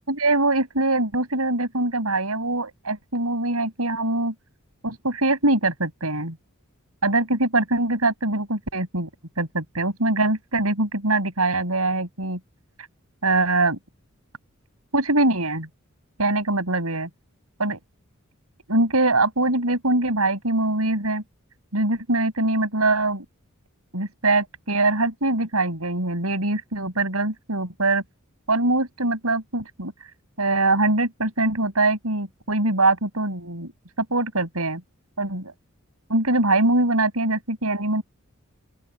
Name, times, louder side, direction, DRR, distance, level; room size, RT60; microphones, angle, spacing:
voice 1, 0.0-4.3 4.8-6.4 7.0-9.1 9.4-12.4 13.2-13.8 14.9-15.7 16.2-17.1 17.6-17.8 18.7-21.2 21.7-23.2 23.9-28.0 28.5-29.9 30.4-33.7 34.0-34.8 35.2-35.5 36.1-38.0, right 2 dB, 85° right, 7.5 m, -23 dB
open air
head